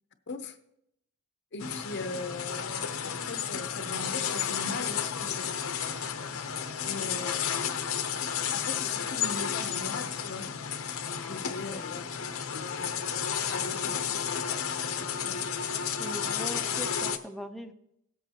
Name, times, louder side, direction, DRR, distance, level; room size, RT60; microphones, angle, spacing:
voice 1, 0.3-0.6 1.5-5.5 6.8-7.4 8.5-10.5 11.2-12.0 12.5-13.1 13.5-14.2 14.8-14.9 15.2-15.7, left 4 dB, 55° left, 8 dB, 0.7 m, -40 dB
sound 1, 1.6-17.2, left 7 dB, 85° left, 0.8 m, -32 dB
voice 2, 16.0-17.7, equal, ahead, 5 dB, 0.6 m, -41 dB
17.5 x 8.0 x 2.9 m, 0.78 s
head